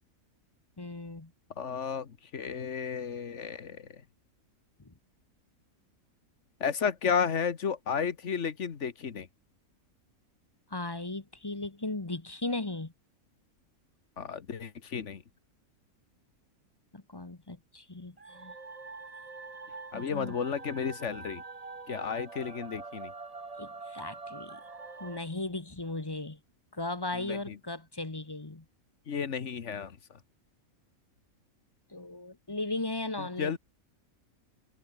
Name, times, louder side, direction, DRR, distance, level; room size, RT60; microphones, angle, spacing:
voice 1, 0.8-1.3 4.8-4.9 10.7-12.9 16.9-18.5 19.9-20.3 23.6-24.6 25.0-26.4 26.7-28.6 31.9-33.6, left 2 dB, 20° left, 1.1 m, -37 dB
voice 2, 1.6-3.9 6.6-9.3 14.2-15.2 19.9-21.4 21.9-23.1 27.2-27.5 29.1-30.0 33.4-33.6, left 6 dB, 55° left, 1.6 m, -33 dB
sound 1, 18.2-25.2, right 3 dB, 25° right, 1.4 m, -44 dB
omnidirectional pair, 1.5 m